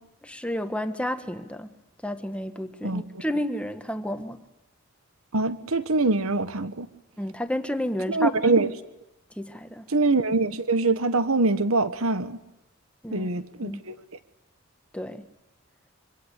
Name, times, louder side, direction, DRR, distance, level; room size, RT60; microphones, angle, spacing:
voice 1, 0.2-1.7 2.0-4.4 7.2-8.3 9.3-9.9 13.0-13.3 13.6-13.8 14.9-15.3, equal, 5° left, 8 dB, 1.5 m, -31 dB
voice 2, 5.3-6.9 8.1-8.7 9.9-12.4 13.1-13.9, right 3 dB, 85° right, 12 dB, 1.4 m, -24 dB
26.5 x 25.0 x 8.3 m, 0.91 s
head